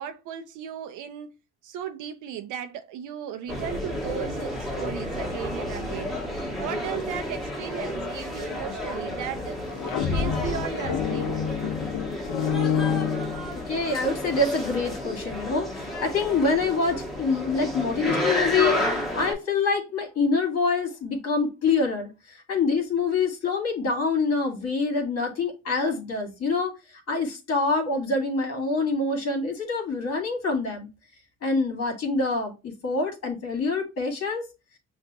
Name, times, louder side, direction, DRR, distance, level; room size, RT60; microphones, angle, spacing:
voice 1, 0.0-1.3 1.6-6.2 6.6-9.6 10.1-11.4, right 9 dB, 85° right, 0.6 m, -36 dB
sound 1, 3.5-19.3, left 1 dB, ahead, 1.4 m, -31 dB
sound 2, 9.6-13.9, left 7 dB, 85° left, 0.7 m, -28 dB
voice 2, 13.7-26.7 27.1-30.9 31.4-34.4, left 4 dB, 55° left, 1.8 m, -26 dB
5.9 x 2.5 x 2.8 m
cardioid pair, 90°, 30 cm